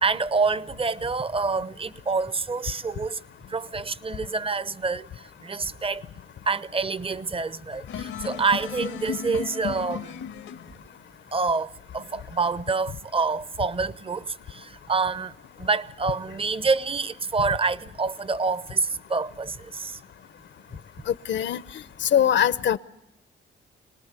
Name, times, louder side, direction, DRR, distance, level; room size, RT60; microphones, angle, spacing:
voice 1, 0.0-3.2 3.5-5.1 5.4-6.0 6.5-10.2 11.3-15.3 15.6-20.0, right 4 dB, 30° right, 0.8 m, -27 dB
sound 1, 7.9-10.8, left 8 dB, 90° left, 1.3 m, -34 dB
voice 2, 21.1-21.6 22.0-22.8, left 9 dB, 65° left, 0.8 m, -22 dB
26.5 x 19.5 x 8.3 m
cardioid pair, 80°, 20 cm